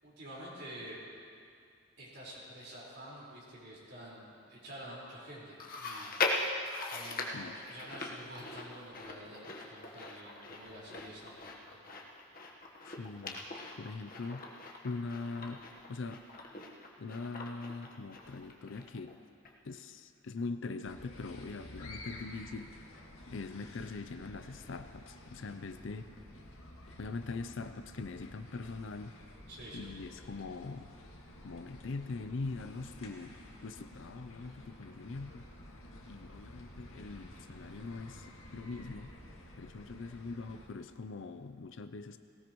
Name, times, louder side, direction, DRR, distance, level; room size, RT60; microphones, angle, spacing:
voice 1, 0.0-1.0 2.0-6.4 6.9-11.9 29.5-29.9, equal, 55° right, -7 dB, 4.6 m, -49 dB
Chewing mastication, 5.6-19.1 19.4-19.5 20.4-20.5, left 3 dB, 45° left, 1.3 m, -40 dB
voice 2, 12.9-13.5 13.8-14.5 14.8-16.2 17.0-19.2 19.6-22.8 23.3-26.1 27.0-29.2 29.7-30.9 31.4-35.5 36.0-39.1 39.6-42.2, left 3 dB, 65° left, 10 dB, 0.5 m, -42 dB
sound 1, 20.8-40.7, left 1 dB, 90° left, 2.0 m, -52 dB
18.5 x 18.0 x 3.1 m, 2.3 s
head